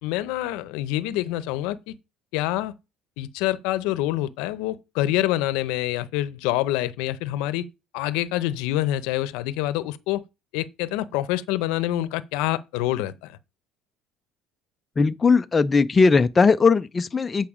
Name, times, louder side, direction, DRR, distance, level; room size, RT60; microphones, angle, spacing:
voice 1, 0.0-1.9 2.3-2.7 3.2-7.7 7.9-10.2 10.5-13.4, left 15 dB, 85° left, 0.7 m, -26 dB
voice 2, 15.0-17.5, left 4 dB, 15° left, 0.4 m, -19 dB
8.7 x 5.8 x 4.9 m
cardioid pair, 160°, 0 cm